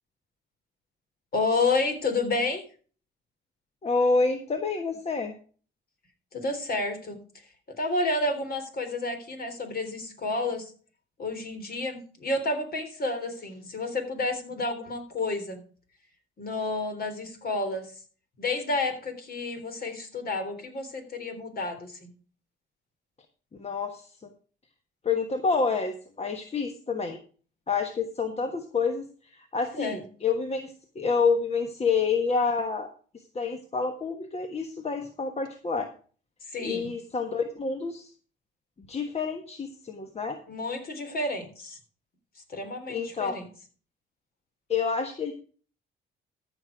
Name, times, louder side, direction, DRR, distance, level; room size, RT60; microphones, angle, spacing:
voice 1, 1.3-2.7 6.3-7.2 7.8-10.7 11.2-15.6 16.4-17.9 18.4-22.1 29.7-30.0 36.4-36.9 40.5-41.8 42.5-43.4, left 2 dB, 50° left, 6 dB, 3.6 m, -30 dB
voice 2, 3.8-5.3 23.6-24.3 25.0-27.2 27.7-35.9 36.6-38.1 38.9-40.4 42.9-43.4 44.7-45.3, left 4 dB, 30° left, 6 dB, 1.4 m, -28 dB
14.0 x 6.3 x 4.9 m, 0.40 s
cardioid pair, 90°, 20 cm